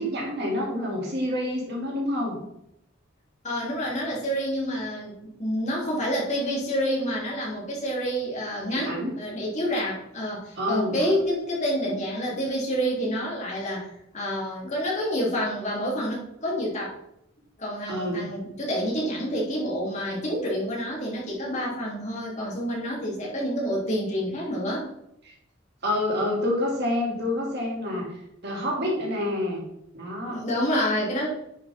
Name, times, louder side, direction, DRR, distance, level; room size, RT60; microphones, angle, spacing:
voice 1, 0.0-2.4 8.7-9.1 10.6-11.1 17.9-18.3 25.8-29.6 29.9-30.4, left 1 dB, 55° right, -2 dB, 2.8 m, -28 dB
voice 2, 3.4-16.9 17.6-24.9 30.3-31.3, equal, 35° left, -5 dB, 3.1 m, -28 dB
10.0 x 6.4 x 3.6 m, 0.81 s
head